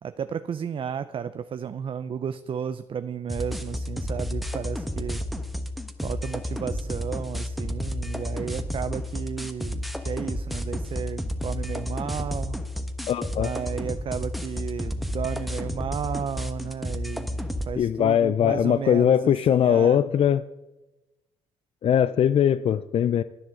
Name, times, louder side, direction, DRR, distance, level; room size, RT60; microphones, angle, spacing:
voice 1, 0.0-5.2 6.0-12.6 13.4-20.0, right 7 dB, 45° right, 12 dB, 0.5 m, -33 dB
sound 1, 3.3-17.7, left 1 dB, ahead, 1.2 m, -31 dB
voice 2, 13.1-13.5 17.8-20.4 21.8-23.2, left 9 dB, 50° left, 15 dB, 0.4 m, -21 dB
11.0 x 10.0 x 7.6 m, 1.0 s
cardioid pair, 100°, 12 cm